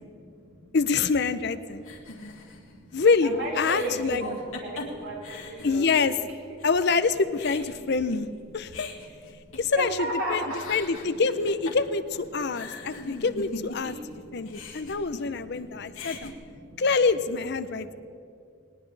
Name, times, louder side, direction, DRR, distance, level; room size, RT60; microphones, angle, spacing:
voice 1, 0.0-0.8 2.0-5.9 6.5-6.6 8.7-8.9 9.2-9.3 9.7-10.6 12.5-13.1 13.9-15.0 15.4-16.8 17.9-18.0, right 1 dB, 70° right, -3 dB, 4.9 m, -37 dB
voice 2, 0.7-1.8 2.9-4.2 5.6-6.2 6.6-8.3 8.5-8.9 9.6-10.0 10.3-10.4 10.7-16.3 16.8-17.9, left 4 dB, 50° left, 12 dB, 0.6 m, -25 dB
sound 1, 1.8-6.3 6.6-6.7 7.0-10.1 10.4-14.1 14.4-15.6 15.8-16.3, left 2 dB, 75° left, 2.0 m, -41 dB
19.5 x 19.5 x 3.3 m, 2.4 s
head